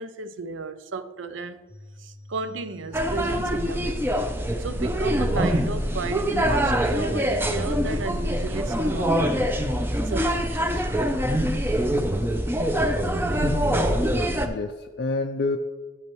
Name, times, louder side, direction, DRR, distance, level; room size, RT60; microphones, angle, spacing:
voice 1, 0.0-1.6 2.0-4.1 4.6-9.4 10.0-10.9, right 3 dB, 80° right, 0.5 m, -33 dB
sound 1, 1.7-14.6, left 1 dB, 30° right, 1.8 m, -46 dB
sound 2, 2.9-14.5, equal, 10° right, 0.5 m, -24 dB
voice 2, 13.4-14.0 14.5-15.6, left 3 dB, 55° left, 0.4 m, -29 dB
11.5 x 8.4 x 3.0 m
head